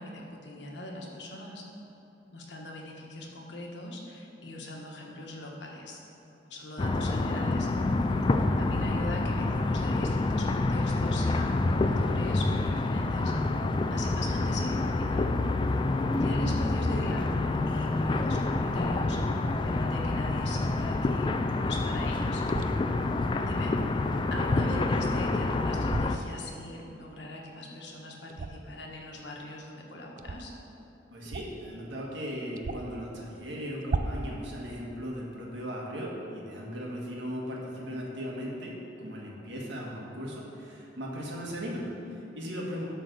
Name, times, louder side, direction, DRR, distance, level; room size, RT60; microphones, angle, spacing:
voice 1, 0.0-1.6 2.3-7.7 8.6-13.3 13.9-15.3 16.2-22.4 23.4-23.7 24.3-30.5, left 1 dB, 75° left, 0 dB, 1.4 m, -40 dB
sound 1, 6.8-26.2, left 2 dB, 25° left, 0.3 m, -27 dB
voice 2, 8.0-8.4 15.6-15.9 31.1-42.8, equal, 75° right, -3 dB, 1.8 m, -38 dB
sound 2, 22.5-22.8 25.8-26.1 28.3-28.7 30.2-30.4 31.2-31.6 31.9-32.0 32.6-33.0 33.8-34.3, right 3 dB, 45° right, 0.4 m, -34 dB
11.5 x 3.9 x 6.7 m, 2.8 s
head